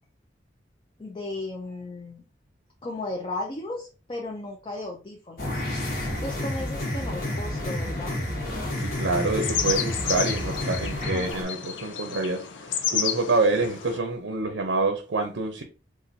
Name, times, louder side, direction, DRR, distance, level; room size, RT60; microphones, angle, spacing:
voice 1, 1.0-2.2 2.8-5.6 6.2-8.2, left 2 dB, 25° left, 0.4 m, -35 dB
sound 1, 5.4-11.4, left 1 dB, 50° left, 1.1 m, -30 dB
sound 2, 8.6-14.0, left 8 dB, 80° left, 0.5 m, -31 dB
voice 2, 8.8-15.6, right 3 dB, 85° right, 0.6 m, -27 dB
4.1 x 2.5 x 2.6 m
head